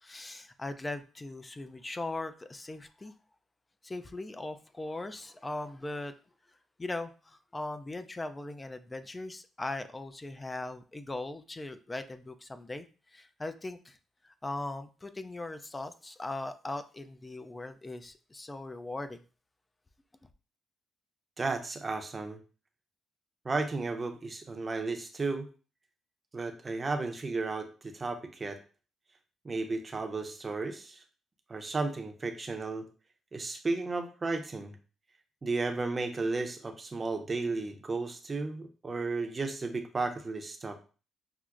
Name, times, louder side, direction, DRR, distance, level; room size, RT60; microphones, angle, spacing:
voice 1, 0.0-3.1 3.8-6.1 6.8-12.9 13.1-14.0 14.2-19.2, left 2 dB, 20° left, 10 dB, 0.3 m, -39 dB
voice 2, 21.4-22.4 23.4-25.5 26.3-28.6 29.4-31.0 31.5-32.9 33.3-34.8 35.4-40.8, right 3 dB, 30° right, 5 dB, 0.6 m, -34 dB
5.8 x 2.0 x 2.4 m, 0.36 s
cardioid pair, 90°, 0 cm